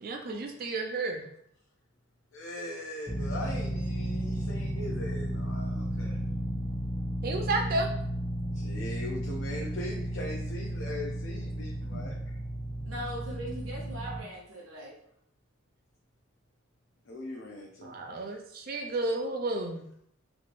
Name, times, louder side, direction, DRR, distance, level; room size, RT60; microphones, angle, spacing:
voice 1, 0.0-1.3 7.2-7.9 11.9-12.1 17.8-19.8, right 2 dB, 45° right, 3 dB, 0.4 m, -32 dB
voice 2, 2.3-6.2 8.5-12.4 17.1-18.2, left 1 dB, 70° left, -2 dB, 0.5 m, -40 dB
sound 1, 3.1-14.2, right 1 dB, 15° left, 0.6 m, -33 dB
voice 3, 12.9-14.9, equal, 80° right, -2 dB, 0.8 m, -40 dB
3.1 x 3.0 x 2.5 m, 0.69 s
head